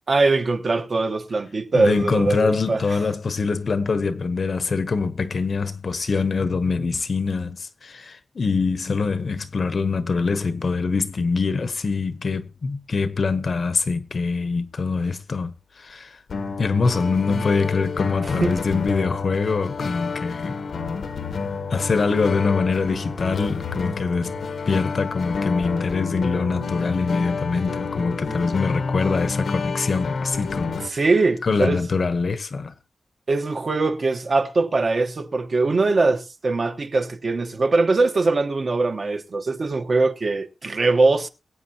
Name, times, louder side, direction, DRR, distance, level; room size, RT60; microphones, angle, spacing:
voice 1, 0.1-3.0 17.3-17.5 18.2-18.5 30.8-31.8 33.3-41.3, right 3 dB, 45° right, 1.1 m, -22 dB
voice 2, 1.7-16.2 16.6-20.6 21.7-24.3 24.7-31.0 31.4-32.7, left 4 dB, 50° left, 0.9 m, -24 dB
sound 1, 16.3-30.9, left 4 dB, 75° left, 1.1 m, -29 dB
23.0 x 8.7 x 2.8 m
wide cardioid pair, 170°, 0 cm